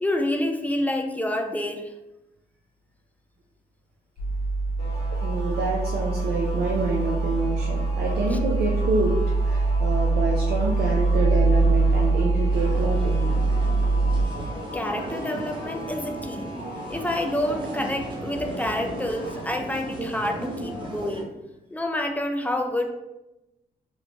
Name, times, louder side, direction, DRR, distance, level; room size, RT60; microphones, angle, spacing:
voice 1, 0.0-1.9 14.7-16.5 16.9-21.3 21.7-22.9, left 1 dB, 10° left, 4 dB, 0.3 m, -28 dB
sound 1, 4.2-14.2, right 3 dB, 55° left, 0.5 m, -23 dB
sound 2, 4.8-19.4, equal, 85° left, 1.2 m, -40 dB
voice 2, 5.1-9.2 9.4-14.4, right 2 dB, 70° right, -3 dB, 0.5 m, -28 dB
sound 3, 12.5-21.2, right 1 dB, 30° right, 0.7 m, -36 dB
3.0 x 2.1 x 2.5 m, 0.96 s
cardioid pair, 80°, 17 cm